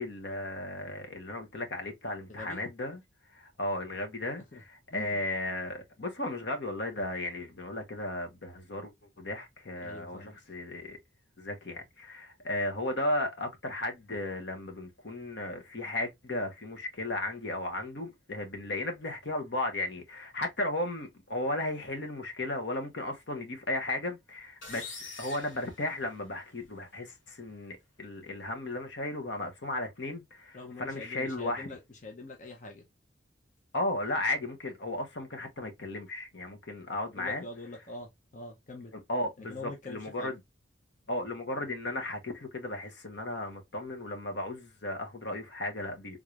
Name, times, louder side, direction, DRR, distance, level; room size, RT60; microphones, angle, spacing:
voice 1, 0.0-3.0 3.3-4.4 4.9-8.9 9.2-11.0 11.4-31.7 33.7-37.4 39.1-40.3 41.1-46.2, left 2 dB, 65° left, 1.0 m, -35 dB
voice 2, 2.3-2.6 4.3-4.6 4.9-5.3 9.8-10.4 30.5-32.9 37.1-39.0 39.4-40.3, left 2 dB, 40° left, 0.7 m, -44 dB
sound 1, 24.6-26.6, left 3 dB, 85° left, 1.7 m, -45 dB
3.7 x 3.2 x 2.4 m
head